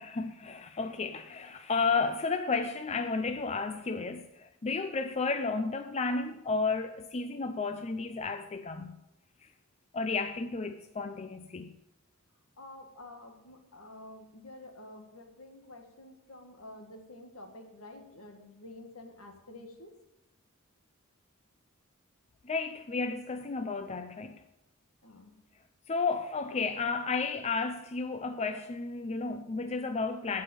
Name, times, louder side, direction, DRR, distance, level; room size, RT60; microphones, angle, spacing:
voice 1, 0.0-9.0 9.4-9.5 9.9-11.7 22.4-24.4 25.9-30.4, left 4 dB, 30° left, 0.5 m, -32 dB
voice 2, 12.6-19.9 25.0-25.4, left 1 dB, 70° left, 1.9 m, -49 dB
15.5 x 5.5 x 7.0 m
head